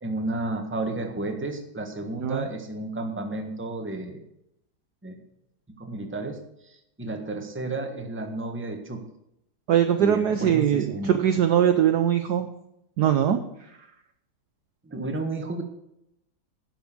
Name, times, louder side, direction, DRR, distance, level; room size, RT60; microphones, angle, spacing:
voice 1, 0.0-4.2 5.0-5.2 5.7-6.4 6.6-9.0 10.0-11.2 14.8-15.6, right 2 dB, 5° right, 4 dB, 1.1 m, -32 dB
voice 2, 9.7-12.5 13.0-13.4, right 10 dB, 70° right, 8 dB, 1.0 m, -21 dB
11.0 x 6.1 x 8.4 m, 0.80 s
omnidirectional pair, 2.3 m